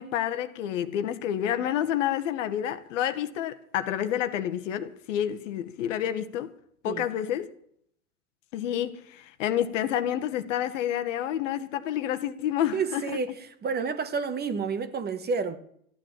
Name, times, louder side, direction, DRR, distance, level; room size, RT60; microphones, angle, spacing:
voice 1, 0.0-6.5 6.8-7.5 8.5-13.0, left 10 dB, 60° left, 1.4 m, -29 dB
voice 2, 12.7-13.3 13.6-15.6, right 5 dB, 20° right, 1.3 m, -29 dB
14.0 x 10.0 x 7.6 m
figure-of-eight pair, 90°, 43 cm